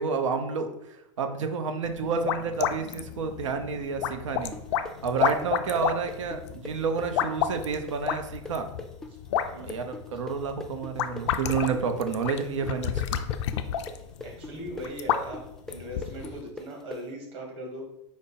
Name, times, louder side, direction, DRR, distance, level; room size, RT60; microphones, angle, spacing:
voice 1, 0.0-4.6 5.0-8.7 9.6-13.1, right 5 dB, 90° right, 7 dB, 0.6 m, -30 dB
sound 1, 1.8-16.4, left 10 dB, 70° left, 0.4 m, -32 dB
sound 2, 4.5-12.1 12.4-17.0, left 2 dB, 5° left, 0.4 m, -41 dB
voice 2, 9.5-9.8 14.2-15.4 15.7-17.8, right 1 dB, 35° right, 1 dB, 1.4 m, -39 dB
5.0 x 2.0 x 4.1 m, 0.83 s
hypercardioid pair, 115°, 16 cm